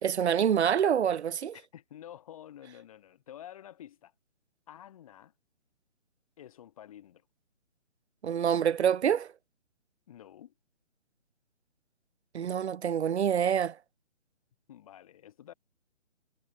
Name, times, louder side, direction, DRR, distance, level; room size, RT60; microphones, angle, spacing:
voice 1, 0.0-1.5 8.2-9.3 12.3-13.8, right 8 dB, 60° right, 0.6 m, -26 dB
voice 2, 1.5-4.1 4.7-5.3 6.4-7.2 10.1-10.5 14.7-15.5, left 11 dB, 30° left, 5.7 m, -49 dB
hypercardioid pair, 170°, 37 cm